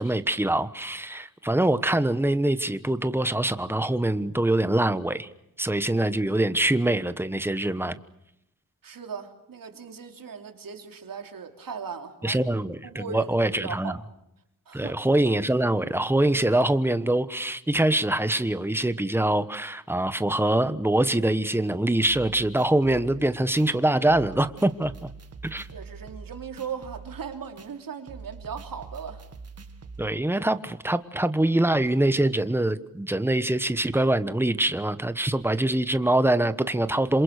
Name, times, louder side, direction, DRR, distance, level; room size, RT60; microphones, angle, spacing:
voice 1, 0.0-5.3 5.6-8.0 12.2-14.0 14.7-25.1 25.4-25.7 30.0-37.2, right 1 dB, 5° right, 12 dB, 1.2 m, -24 dB
voice 2, 8.8-12.4 12.9-14.0 14.7-15.0 25.7-29.2, right 6 dB, 80° right, 5 dB, 3.1 m, -38 dB
sound 1, 22.1-30.1, right 5 dB, 45° right, 1.9 m, -44 dB
27.5 x 27.0 x 6.6 m, 0.81 s
wide cardioid pair, 125°, 33 cm